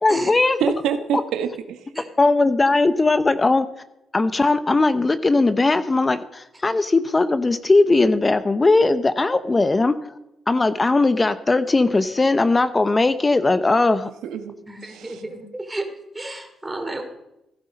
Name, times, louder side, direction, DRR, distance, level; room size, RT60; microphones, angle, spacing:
voice 1, 0.0-0.6 2.2-3.7 4.1-9.9 10.5-14.1, left 3 dB, 25° left, 12 dB, 0.8 m, -19 dB
voice 2, 0.6-1.9 14.0-14.6 14.8-15.2, right 7 dB, 85° right, 8 dB, 1.2 m, -26 dB
voice 3, 14.7-15.9 16.1-17.0, right 2 dB, 15° right, 5 dB, 2.7 m, -32 dB
16.0 x 11.0 x 5.3 m, 0.89 s
cardioid pair, 90°, 0 cm